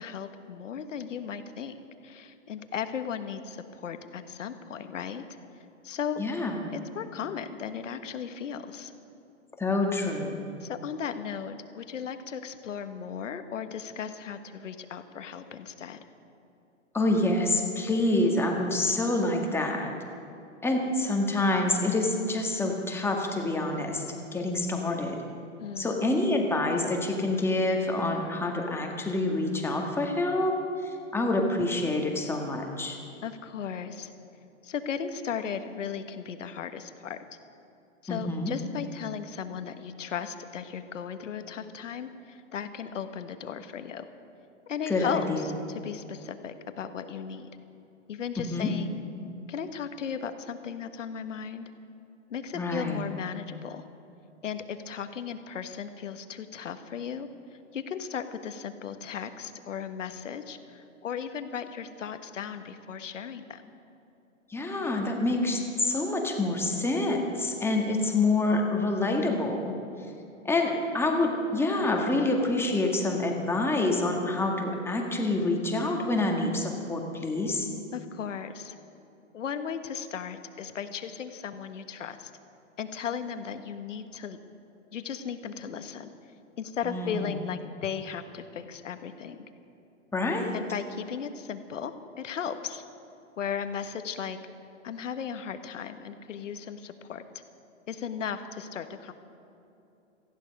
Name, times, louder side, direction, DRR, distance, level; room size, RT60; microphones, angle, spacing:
voice 1, 0.0-1.8 2.0-5.2 5.8-6.2 6.7-8.9 10.6-16.0 25.6-26.0 33.2-34.1 34.6-37.2 38.0-44.0 44.7-47.5 48.1-49.0 49.5-51.7 52.3-53.8 54.4-57.3 57.7-63.7 77.9-78.8 79.3-82.3 82.8-84.4 84.9-86.1 86.6-89.4 90.5-92.8 93.4-94.4 94.8-97.2 97.9-99.1, left 7 dB, 80° left, 9 dB, 1.4 m, -36 dB
voice 2, 6.2-6.7 9.6-10.5 16.9-19.9 20.6-24.0 24.3-25.2 25.8-30.5 30.8-33.0 38.1-38.5 44.9-45.4 48.4-48.7 52.5-53.0 64.5-69.7 70.5-77.7 86.8-87.3 90.1-90.5, left 2 dB, 5° left, 1 dB, 1.8 m, -27 dB
18.0 x 15.0 x 5.3 m, 2.9 s
hypercardioid pair, 130°, 37 cm